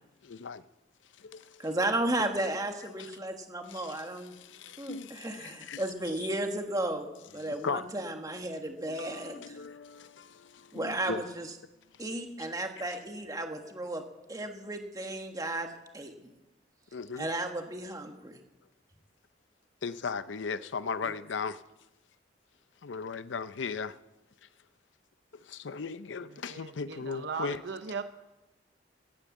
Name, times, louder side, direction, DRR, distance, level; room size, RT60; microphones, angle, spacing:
voice 1, 0.2-0.6 1.2-1.7 3.0-3.1 3.7-5.8 6.2-6.3 7.4-7.9 8.8-11.2 16.9-17.3 19.8-21.6 22.8-24.0 25.5-27.6, left 5 dB, 90° left, 0.6 m, -37 dB
voice 2, 1.6-4.3 4.8-9.6 10.7-11.5 12.0-14.0 14.3-16.1 17.2-18.4, right 1 dB, 20° right, 1.5 m, -34 dB
voice 3, 26.3-28.0, right 5 dB, 70° right, 0.7 m, -38 dB
15.0 x 9.0 x 8.4 m
head